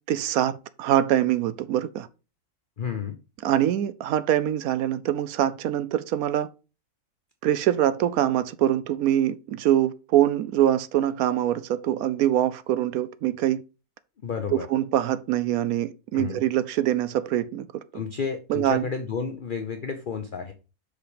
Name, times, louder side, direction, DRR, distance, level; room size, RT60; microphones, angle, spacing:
voice 1, 0.1-2.1 3.4-6.5 7.4-13.6 14.5-17.8 18.5-18.9, right 11 dB, 75° right, 1.0 m, -24 dB
voice 2, 2.8-3.2 14.2-14.7 16.1-16.4 17.9-20.5, left 6 dB, 45° left, 0.7 m, -31 dB
6.0 x 5.1 x 5.0 m
omnidirectional pair, 1.6 m